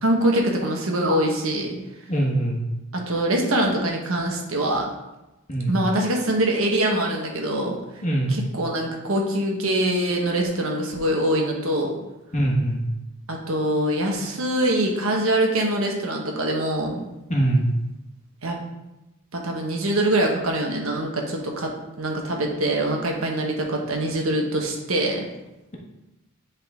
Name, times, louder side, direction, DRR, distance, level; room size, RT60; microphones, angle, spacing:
voice 1, 0.0-1.8 2.9-4.9 5.7-7.7 8.3-11.9 13.3-17.0 18.4-18.6 19.3-25.2, right 1 dB, 70° right, 0 dB, 1.3 m, -24 dB
voice 2, 2.1-2.6 5.5-5.7 8.0-8.4 12.3-12.8 17.3-17.7, right 1 dB, 30° left, -1 dB, 1.3 m, -22 dB
9.7 x 3.9 x 3.6 m, 0.97 s
head